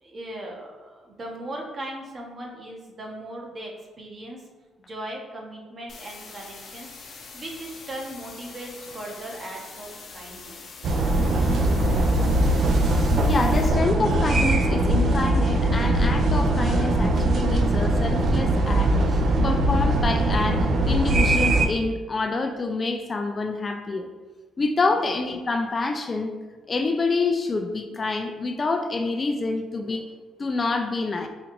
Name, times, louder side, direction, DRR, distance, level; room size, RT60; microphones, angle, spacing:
voice 1, 0.0-4.4 4.9-10.6 24.9-25.2, right 1 dB, 40° right, -1 dB, 0.9 m, -38 dB
sound 1, 5.9-13.7, left 4 dB, 60° left, 0.7 m, -43 dB
sound 2, 10.8-21.7, right 1 dB, 55° right, 0.4 m, -21 dB
voice 2, 13.0-24.1 24.6-26.3 26.7-30.1 30.4-31.3, left 3 dB, 35° left, 6 dB, 0.3 m, -27 dB
5.1 x 2.4 x 3.0 m, 1.3 s
cardioid pair, 90°, 0 cm